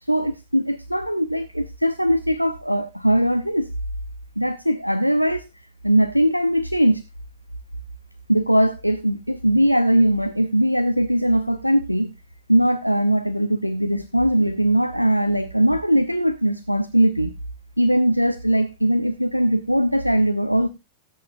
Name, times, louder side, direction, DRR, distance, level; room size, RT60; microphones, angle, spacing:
voice 1, 0.0-3.7 4.4-5.5 5.8-7.0 8.3-12.1 12.5-17.3 17.8-20.7, equal, 90° left, 0.6 m, -20 dB
17.0 x 8.7 x 2.6 m
figure-of-eight pair, 90°, 0 cm